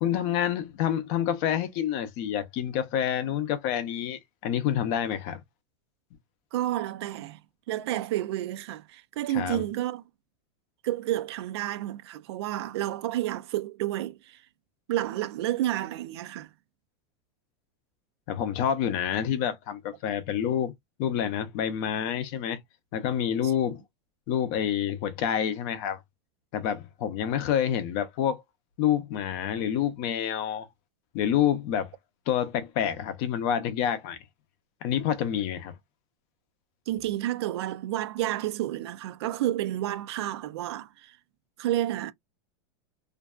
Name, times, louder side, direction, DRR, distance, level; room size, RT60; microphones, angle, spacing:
voice 1, 0.0-5.4 9.3-9.6 18.3-20.7 21.0-22.6 22.9-23.8 24.3-26.0 26.5-28.4 28.8-30.7 31.1-31.9 32.3-34.2 34.8-35.8, left 9 dB, 40° left, 0.5 m, -28 dB
voice 2, 6.5-7.4 7.7-10.0 10.8-14.4 14.9-16.5 36.9-41.2 41.6-42.1, right 13 dB, 70° right, 0.4 m, -30 dB
2.5 x 2.2 x 2.2 m
supercardioid pair, 165°, 14 cm